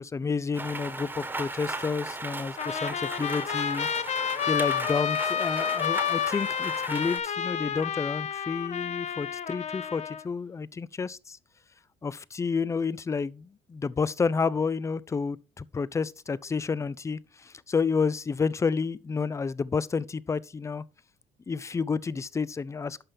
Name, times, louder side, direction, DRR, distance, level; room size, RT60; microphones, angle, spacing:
voice 1, 0.0-3.9 4.5-11.4 12.0-20.8 21.5-23.0, left 5 dB, 15° left, 0.4 m, -30 dB
Rain, 0.5-7.2, right 2 dB, 10° right, 1.3 m, -37 dB
Trumpet, 2.6-10.2, left 8 dB, 40° left, 0.7 m, -30 dB
11.0 x 5.6 x 3.3 m
cardioid pair, 110°, 17 cm